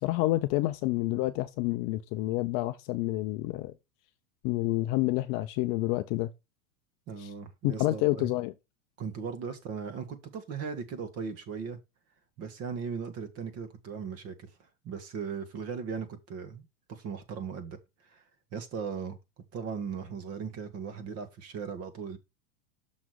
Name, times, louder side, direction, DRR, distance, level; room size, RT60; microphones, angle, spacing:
voice 1, 0.0-3.7 4.4-6.3 7.2-7.3 7.6-8.5, left 18 dB, 35° left, 0.5 m, -28 dB
voice 2, 7.1-8.3 9.0-11.8 12.4-14.5 14.8-17.8 18.1-18.2 18.5-19.2 19.5-22.2, right 6 dB, 35° right, 1.6 m, -38 dB
6.3 x 5.9 x 4.7 m
supercardioid pair, 145°, 43 cm